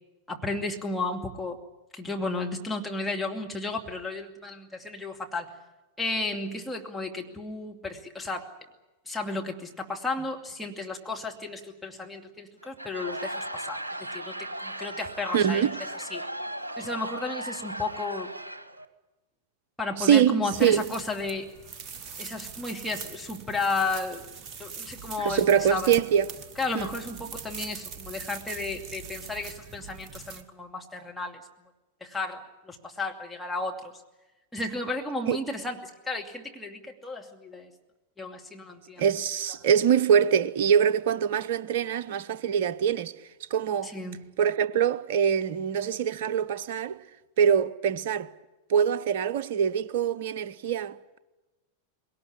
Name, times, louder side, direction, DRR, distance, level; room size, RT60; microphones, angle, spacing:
voice 1, 0.3-1.6 1.9-5.5 6.0-8.5 9.1-15.7 16.1-16.3 16.8-18.3 19.8-21.5 22.2-24.3 24.6-25.9 26.6-31.4 32.0-33.8 34.5-37.7 38.2-39.0 43.8-44.2, left 3 dB, 5° left, 2.4 m, -33 dB
Laughter / Crowd, 12.6-18.8, right 1 dB, 80° right, 1.1 m, -37 dB
voice 2, 15.3-15.8 20.0-20.8 25.2-26.3 26.7-26.9 35.3-35.4 39.0-43.1 43.5-43.9 44.4-47.0 47.4-48.3 48.7-51.2, right 8 dB, 55° right, 0.8 m, -24 dB
sound 1, 20.5-30.4, right 6 dB, 35° right, 1.5 m, -42 dB
21.5 x 18.0 x 9.9 m
figure-of-eight pair, 90°, 0 cm